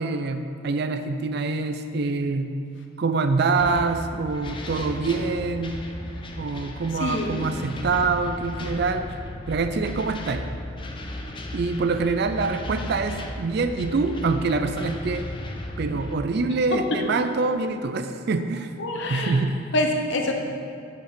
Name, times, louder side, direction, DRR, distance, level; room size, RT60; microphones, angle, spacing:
voice 1, 0.0-2.6 3.0-5.8 6.4-9.1 9.5-10.5 11.5-15.3 15.8-18.7 19.1-19.6, right 4 dB, 50° right, 8 dB, 0.4 m, -25 dB
sound 1, 3.6-16.2, left 1 dB, 25° left, 0.6 m, -35 dB
voice 2, 7.0-7.5 18.8-19.4 19.7-20.3, left 1 dB, 60° left, 2 dB, 0.9 m, -26 dB
11.0 x 5.2 x 5.1 m, 2.7 s
head